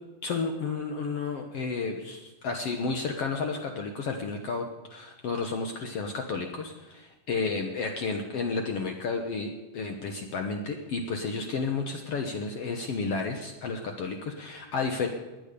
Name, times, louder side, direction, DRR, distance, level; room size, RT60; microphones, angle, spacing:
voice 1, 0.2-15.1, left 4 dB, 60° left, 4 dB, 1.6 m, -32 dB
19.0 x 11.0 x 6.8 m, 1.2 s
omnidirectional pair, 4.1 m